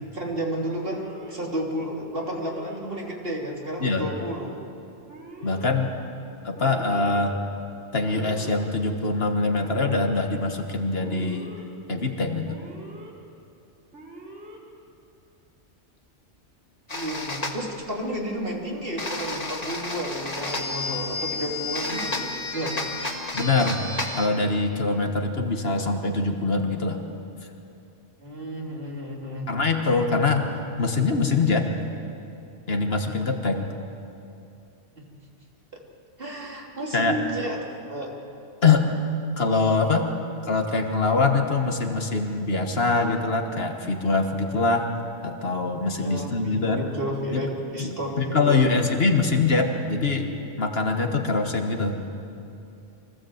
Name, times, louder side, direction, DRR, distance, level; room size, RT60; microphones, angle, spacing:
voice 1, 0.1-4.6 16.9-22.7 28.2-29.5 35.0-35.1 36.2-37.6 37.9-38.1 46.0-48.8, equal, 50° right, -2 dB, 3.3 m, -32 dB
Alarm, 0.7-1.3 2.1-2.8 3.6-4.3 5.1-5.7 6.5-7.2 8.0-8.7 9.5-10.2 11.0-11.6 12.4-13.1 13.9-14.6, right 1 dB, 85° right, 4.1 m, -43 dB
voice 2, 3.8-4.1 5.4-5.9 6.4-7.4 7.9-11.5 11.9-12.6 23.3-23.8 24.2-27.0 29.5-30.5 30.8-31.7 32.7-33.7 36.9-37.2 38.6-38.9 39.4-40.1 40.5-44.9 45.2-46.9 47.3-47.4 47.8-50.3 50.6-52.0, left 3 dB, 55° left, 4 dB, 1.7 m, -23 dB
sound 1, 16.9-17.6 19.0-24.3, left 3 dB, 35° left, 1.8 m, -31 dB
25.0 x 16.0 x 8.0 m, 2.7 s
omnidirectional pair, 1.2 m